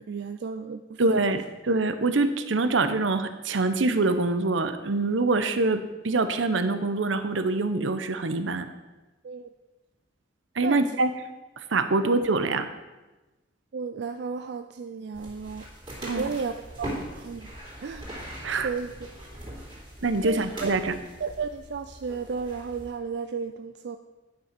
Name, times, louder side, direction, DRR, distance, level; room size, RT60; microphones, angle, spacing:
voice 1, 0.0-1.2 9.2-9.5 10.6-11.0 13.7-15.7 16.0-17.5 17.8-18.1 18.6-19.1 20.2-20.7 21.2-24.0, right 5 dB, 60° right, 8 dB, 0.4 m, -34 dB
voice 2, 1.0-8.7 10.6-11.1 11.6-12.6 16.1-16.2 18.4-18.7 20.0-20.9, right 3 dB, 80° right, 10 dB, 0.7 m, -25 dB
sound 1, 15.1-22.9, right 1 dB, 25° right, 3.1 m, -41 dB
9.9 x 5.8 x 5.9 m, 1.1 s
head